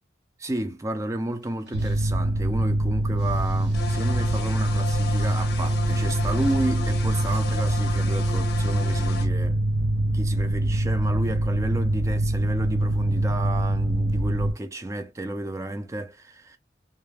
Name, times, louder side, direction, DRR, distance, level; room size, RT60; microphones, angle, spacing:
voice 1, 0.4-9.6 10.1-16.6, right 1 dB, 15° right, 0.4 m, -32 dB
sound 1, 1.3-4.3 4.5-8.4, equal, 65° right, 1.0 m, -47 dB
Mechanical fan, 1.7-14.5, right 1 dB, 80° right, 0.4 m, -24 dB
sound 2, 3.7-9.3, left 5 dB, 55° left, 0.6 m, -36 dB
2.3 x 2.1 x 3.2 m
head